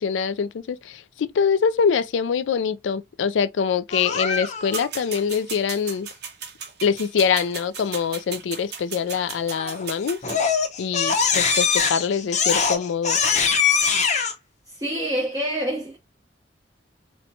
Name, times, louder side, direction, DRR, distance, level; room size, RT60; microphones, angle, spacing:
voice 1, 0.0-6.1 6.8-10.2 10.8-13.2, left 6 dB, 85° left, 0.4 m, -24 dB
Crying sobbing, 3.9-4.8 9.5-9.8 10.2-14.3, left 5 dB, 40° left, 0.7 m, -22 dB
sound 1, 4.7-10.4, right 6 dB, 65° right, 1.0 m, -36 dB
voice 2, 14.7-16.0, right 1 dB, 20° right, 0.7 m, -27 dB
4.2 x 2.2 x 2.6 m
head